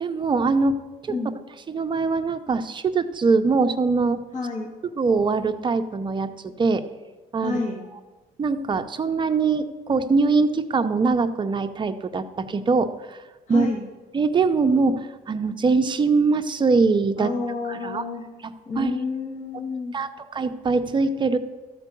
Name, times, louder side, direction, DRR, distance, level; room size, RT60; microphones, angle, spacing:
voice 1, 0.0-0.7 1.0-1.1 1.7-4.2 5.0-6.3 6.6-6.8 7.3-7.6 8.4-13.2 13.5-13.7 14.1-17.3 17.7-18.0 18.8-19.0 19.9-21.4, right 4 dB, 30° right, 7 dB, 0.7 m, -22 dB
voice 2, 4.3-4.7 7.4-7.8 13.5-13.8 17.2-18.2 18.7-20.0, left 3 dB, 45° left, -1 dB, 1.7 m, -29 dB
13.0 x 4.6 x 6.9 m, 1.3 s
cardioid pair, 110°, 17 cm